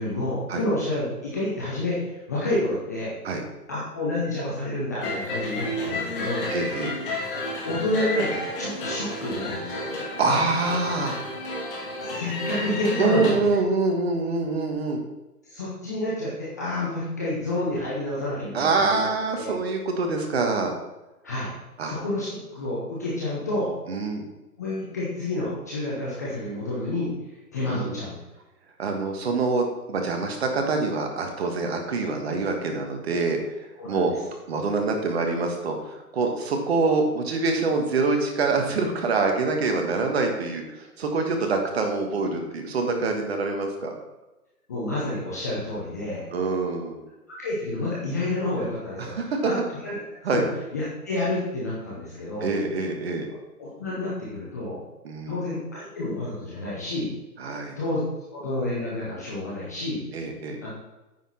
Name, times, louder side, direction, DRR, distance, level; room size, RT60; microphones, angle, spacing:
voice 1, 0.0-3.1 3.7-6.5 7.6-9.8 10.3-10.4 12.0-13.6 15.4-19.0 19.3-19.5 21.2-21.5 21.8-23.7 24.6-28.1 33.8-34.1 44.7-46.3 47.4-50.4 50.7-52.5 53.6-54.8 55.3-57.1 57.8-58.0 58.3-60.0 60.6-60.7, left 1 dB, 10° left, -7 dB, 0.6 m, -29 dB
sound 1, 5.0-13.3, left 1 dB, 35° left, 2.2 m, -31 dB
voice 2, 6.5-6.9 10.2-11.3 13.0-15.0 18.5-20.7 21.8-21.9 23.9-24.2 27.6-28.0 28.8-34.1 34.5-43.9 46.3-47.0 49.0-49.5 50.2-50.4 52.4-53.3 55.0-55.4 57.4-57.8 60.1-60.6, right 3 dB, 40° right, 4 dB, 1.5 m, -25 dB
9.3 x 5.8 x 4.2 m, 1.0 s
figure-of-eight pair, 145°, 48 cm